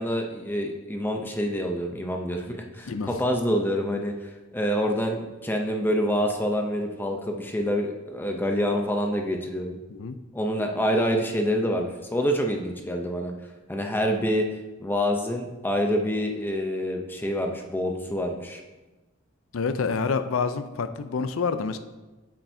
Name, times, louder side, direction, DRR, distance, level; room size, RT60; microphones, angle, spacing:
voice 1, 0.0-9.8 10.3-13.3 13.7-14.5 14.8-18.6, equal, 10° left, 2 dB, 0.6 m, -27 dB
voice 2, 19.5-21.8, left 5 dB, 80° left, 10 dB, 0.5 m, -27 dB
8.9 x 7.5 x 2.7 m, 1.1 s
head